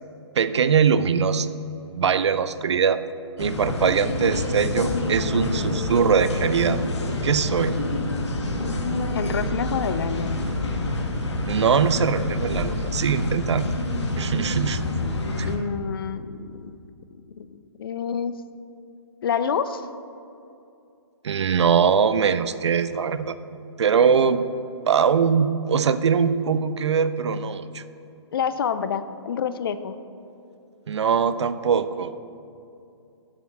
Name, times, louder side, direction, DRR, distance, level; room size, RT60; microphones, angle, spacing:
voice 1, 0.3-1.5 1.9-3.0 3.4-6.8 7.2-7.7 11.5-13.7 14.2-14.8 15.4-15.5 21.2-23.3 23.8-24.5 24.9-27.8 30.9-32.1, right 6 dB, 70° right, 13 dB, 0.5 m, -22 dB
sound 1, 3.4-15.6, left 2 dB, 70° left, 1.3 m, -27 dB
voice 2, 9.1-10.4 15.3-16.7 17.3-18.3 19.2-19.9 28.3-30.0, left 7 dB, 50° left, 13 dB, 0.5 m, -28 dB
7.2 x 6.7 x 6.0 m, 2.6 s
hypercardioid pair, 140°, 15 cm